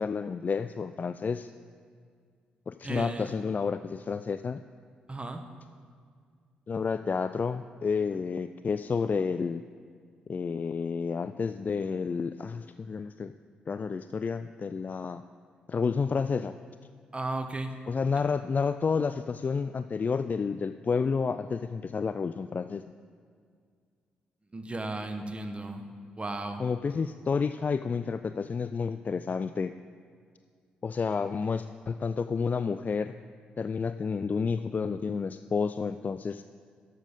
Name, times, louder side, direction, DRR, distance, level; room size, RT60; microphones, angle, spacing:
voice 1, 0.0-1.5 2.7-4.6 6.7-9.6 10.3-13.3 13.7-15.2 15.7-16.5 17.9-22.8 26.6-29.7 30.8-33.1 33.6-36.4, left 5 dB, 40° left, 11 dB, 0.3 m, -30 dB
voice 2, 2.8-3.2 5.1-5.4 17.1-17.7 24.5-25.9 26.2-26.6, right 2 dB, 25° right, 7 dB, 1.3 m, -34 dB
12.0 x 7.5 x 5.3 m, 2.1 s
hypercardioid pair, 40°, 4 cm